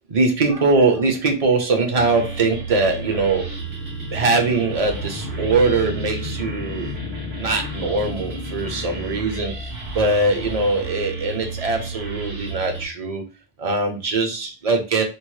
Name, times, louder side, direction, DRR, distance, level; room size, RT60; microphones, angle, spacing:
voice 1, 0.0-3.5 4.1-6.9 7.3-13.3 13.6-15.0, right 3 dB, 40° right, 4 dB, 0.7 m, -21 dB
sound 1, 1.9-12.9, right 3 dB, 75° right, 1.4 m, -32 dB
sound 2, 3.4-10.4, left 7 dB, 50° left, 0.5 m, -37 dB
4.4 x 2.0 x 3.1 m, 0.32 s
omnidirectional pair, 1.1 m